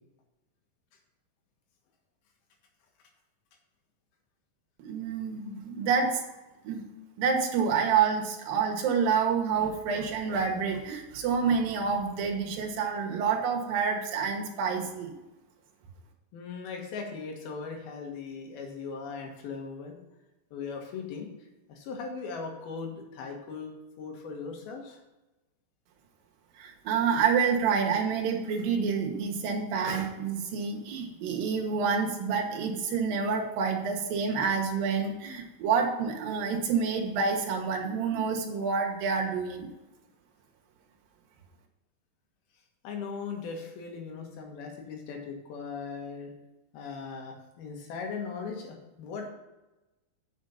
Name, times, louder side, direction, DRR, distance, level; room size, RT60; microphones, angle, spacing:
voice 1, 4.8-6.2 6.6-6.8 7.2-15.2 26.6-39.7, right 6 dB, 75° right, 2 dB, 3.0 m, -28 dB
voice 2, 16.3-20.0 20.5-21.3 21.7-23.7 24.0-25.0 42.8-46.3 46.7-49.3, left 5 dB, 85° left, 2 dB, 3.4 m, -38 dB
8.4 x 6.4 x 5.6 m, 1.0 s
omnidirectional pair, 4.2 m